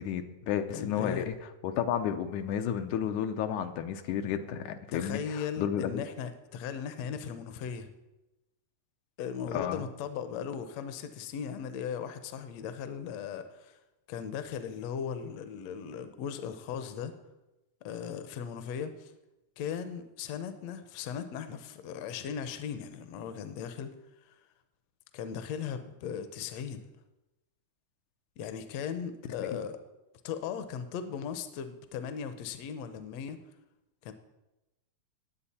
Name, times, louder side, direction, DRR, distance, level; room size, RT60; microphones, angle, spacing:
voice 1, 0.0-1.4 1.6-6.0 9.5-9.8 29.4-29.6, left 9 dB, 85° left, 7 dB, 2.3 m, -32 dB
voice 2, 0.7-1.3 4.9-7.9 9.2-13.8 14.1-17.2 17.8-19.1 19.6-24.0 24.2-24.4 25.1-26.9 28.4-29.8 30.2-33.5 34.0-34.1, left 7 dB, 70° left, 10 dB, 1.8 m, -38 dB
18.5 x 7.7 x 4.3 m, 1.0 s
omnidirectional pair, 3.4 m